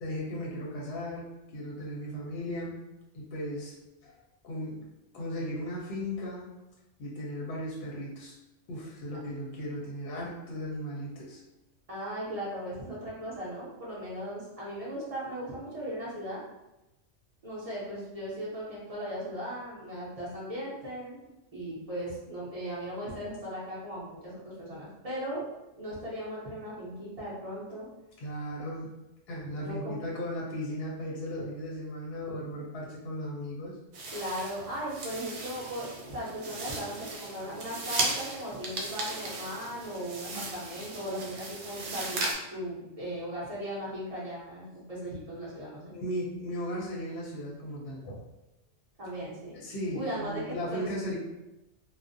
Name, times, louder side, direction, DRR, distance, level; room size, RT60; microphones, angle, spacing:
voice 1, 0.0-1.3 1.5-2.7 3.1-3.7 4.0-4.2 4.4-4.9 5.1-6.5 7.0-8.3 8.7-11.4 28.2-28.9 29.3-33.8 40.3-40.4 45.9-48.2 49.5-51.2, equal, 60° left, -4 dB, 0.7 m, -36 dB
voice 2, 11.9-16.4 17.4-21.3 21.5-25.4 25.8-27.9 29.6-30.0 34.1-42.2 42.5-45.9 49.0-49.6 49.9-50.9, equal, 35° right, -7 dB, 0.7 m, -37 dB
sound 1, 33.9-42.3, right 3 dB, 70° right, 0.8 m, -36 dB
2.3 x 2.1 x 2.5 m, 0.95 s
omnidirectional pair, 1.3 m